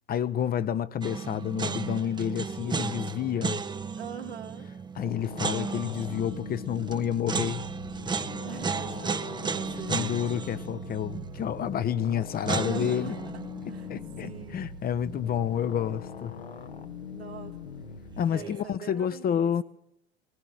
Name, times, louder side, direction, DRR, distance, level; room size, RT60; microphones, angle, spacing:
voice 1, 0.1-3.6 5.0-7.7 9.9-13.1 13.9-16.3 18.2-19.6, left 9 dB, 30° left, 0.8 m, -29 dB
sound 1, 1.0-16.0 16.3-16.4 18.1-18.6, right 5 dB, 15° right, 0.7 m, -35 dB
voice 2, 4.0-4.7 8.2-10.1 12.6-13.2 13.7-13.9 14.2-14.6 17.1-17.6 18.3-19.5, right 9 dB, 85° right, 2.8 m, -42 dB
sound 2, 5.0-18.2, left 6 dB, 80° left, 1.6 m, -42 dB
20.5 x 18.0 x 8.0 m
figure-of-eight pair, 75°, 31 cm